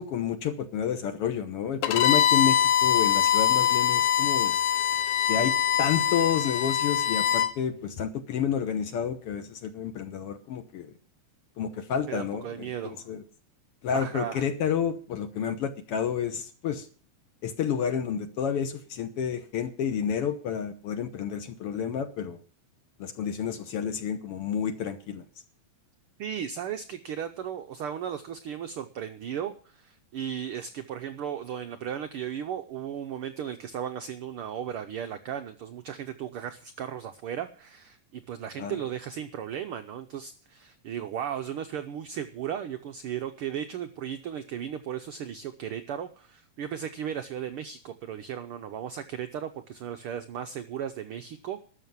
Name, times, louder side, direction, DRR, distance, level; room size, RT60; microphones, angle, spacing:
voice 1, 0.0-4.6 5.3-5.5 5.8-10.9 11.6-13.2 13.8-16.9 17.4-22.4 23.0-25.2 38.6-38.8, left 8 dB, 60° left, 8 dB, 1.7 m, -30 dB
Bowed string instrument, 1.8-7.5, left 9 dB, 80° left, 2.3 m, -23 dB
voice 2, 12.1-13.1 13.9-14.5 26.2-51.6, right 9 dB, 85° right, 8 dB, 1.2 m, -36 dB
12.5 x 6.5 x 9.4 m, 0.43 s
omnidirectional pair, 3.4 m